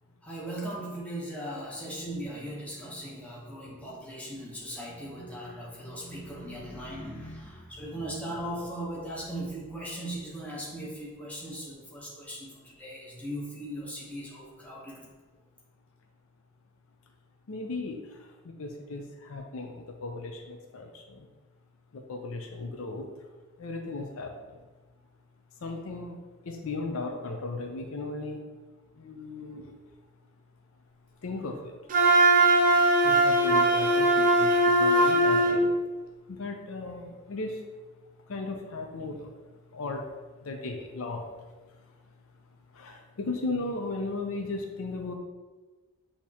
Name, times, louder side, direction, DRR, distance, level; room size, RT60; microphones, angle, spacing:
voice 1, 0.2-15.0, right 1 dB, 5° left, -5 dB, 0.9 m, -38 dB
voice 2, 17.5-18.0 18.4-21.3 21.9-23.1 23.6-24.6 25.6-26.2 26.5-28.4 29.0-29.7 31.2-31.7 33.0-35.7 36.3-37.6 38.3-39.3 39.7-40.1 40.4-41.3 42.7-45.1, left 3 dB, 70° left, 3 dB, 0.5 m, -36 dB
Wind instrument woodwind instrument, 31.9-35.6, right 1 dB, 35° right, 0.6 m, -21 dB
6.5 x 2.8 x 2.9 m, 1.3 s
head